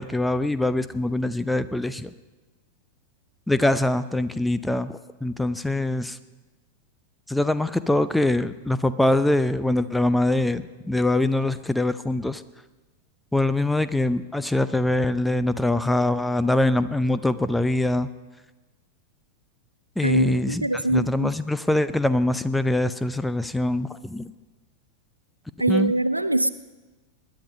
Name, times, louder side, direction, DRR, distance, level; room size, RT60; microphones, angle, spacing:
voice 1, 0.0-2.1 3.5-6.2 7.3-12.4 13.3-18.1 20.0-24.3 25.7-25.9, left 1 dB, 5° left, 14 dB, 0.6 m, -23 dB
voice 2, 20.0-21.3 25.6-26.5, right 2 dB, 85° right, 13 dB, 0.5 m, -23 dB
20.5 x 11.0 x 5.3 m, 1.2 s
figure-of-eight pair, 90°, 0 cm